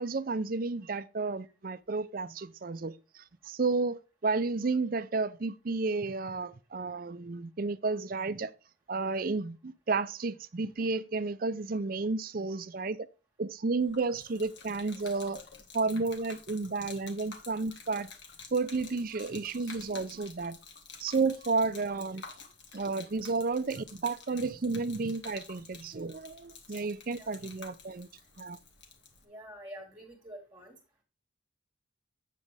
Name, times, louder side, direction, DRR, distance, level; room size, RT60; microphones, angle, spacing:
voice 1, 0.0-8.5 8.9-13.1 13.4-15.4 15.7-18.1 18.5-20.6 21.0-22.2 22.7-28.1 28.4-28.6, right 3 dB, 45° right, 0.5 m, -32 dB
Gurgling / Liquid, 13.8-29.2, left 5 dB, 65° left, 1.6 m, -50 dB
voice 2, 29.2-30.8, equal, 15° right, 1.8 m, -47 dB
8.3 x 7.5 x 3.3 m
head